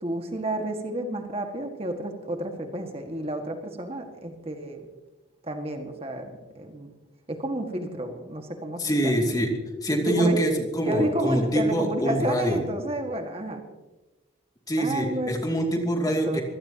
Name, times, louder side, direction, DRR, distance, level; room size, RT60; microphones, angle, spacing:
voice 1, 0.0-4.8 5.4-6.9 7.3-9.1 10.1-10.4 10.8-13.6 14.8-15.3 16.1-16.4, right 1 dB, 35° right, 4 dB, 1.8 m, -30 dB
voice 2, 8.8-9.5 9.8-12.6 14.7-16.4, equal, 20° left, 1 dB, 2.6 m, -25 dB
25.5 x 17.5 x 2.9 m, 1.1 s
head